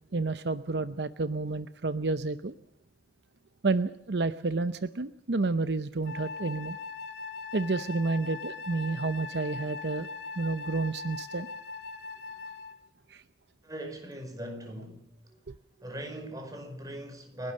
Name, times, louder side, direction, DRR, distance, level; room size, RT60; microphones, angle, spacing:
voice 1, 0.1-2.5 3.6-6.8 7.5-10.1 10.4-11.5 13.1-13.2 15.5-15.6, right 3 dB, 65° right, 0.7 m, -30 dB
Wind instrument woodwind instrument, 6.0-12.8, left 4 dB, 75° left, 2.5 m, -40 dB
voice 2, 13.6-15.0 15.3-15.4 15.8-17.5, right 1 dB, 20° right, 5.3 m, -40 dB
30.0 x 12.0 x 7.6 m
head